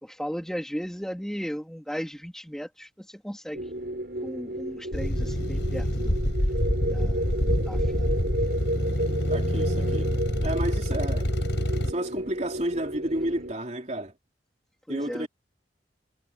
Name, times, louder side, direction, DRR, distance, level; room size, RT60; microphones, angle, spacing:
voice 1, 0.0-3.7 4.2-6.2 6.9-8.1 14.9-15.3, equal, 5° left, 3.1 m, -36 dB
sound 1, 3.5-13.5, right 1 dB, 60° right, 7.3 m, -33 dB
sound 2, 4.9-11.9, equal, 90° left, 5.0 m, -26 dB
voice 2, 9.3-10.1 10.4-11.3 11.9-14.1 14.9-15.3, right 1 dB, 40° right, 3.6 m, -31 dB
head